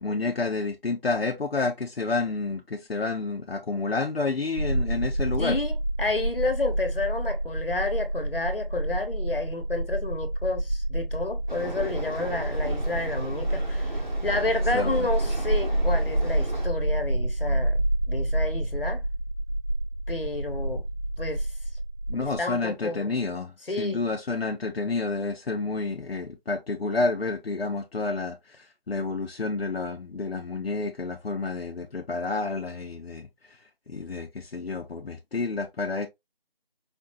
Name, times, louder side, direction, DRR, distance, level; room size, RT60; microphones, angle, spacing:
voice 1, 0.0-5.6 14.7-15.1 22.1-23.5 23.8-28.4 28.9-33.3 33.9-36.1, left 3 dB, 90° left, 0.7 m, -29 dB
sound 1, 4.6-22.4, right 1 dB, 35° left, 1.1 m, -28 dB
voice 2, 5.4-14.0 14.2-19.0 20.1-20.8 21.2-21.5 22.4-23.1 23.7-24.0, left 2 dB, 70° left, 1.2 m, -30 dB
sound 2, 11.5-16.7, right 1 dB, 50° right, 1.3 m, -38 dB
5.1 x 2.1 x 3.0 m
figure-of-eight pair, 175°, 29 cm